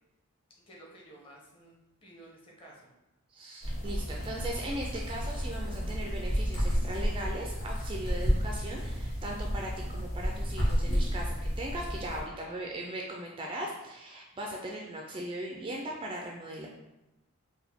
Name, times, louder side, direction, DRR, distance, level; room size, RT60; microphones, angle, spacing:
voice 1, 0.7-2.9, right 1 dB, 25° left, -3 dB, 0.9 m, -53 dB
voice 2, 3.3-16.7, right 1 dB, 25° right, 0 dB, 0.3 m, -39 dB
sound 1, 3.6-12.2, equal, 65° left, 1.3 m, -31 dB
4.6 x 2.2 x 3.4 m, 0.98 s
head